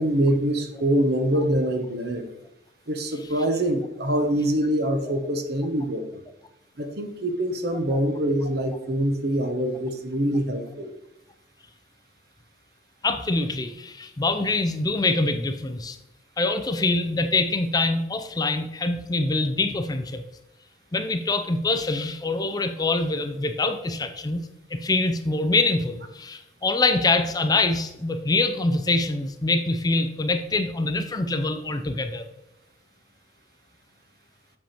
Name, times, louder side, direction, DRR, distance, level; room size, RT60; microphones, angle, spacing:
voice 1, 0.0-2.3 2.9-6.2 6.8-10.9, right 1 dB, 55° right, 7 dB, 0.9 m, -24 dB
voice 2, 13.0-16.0 16.4-20.2 20.9-24.4 24.7-32.2, left 3 dB, 20° left, 7 dB, 0.5 m, -24 dB
7.5 x 6.8 x 3.0 m, 0.92 s
head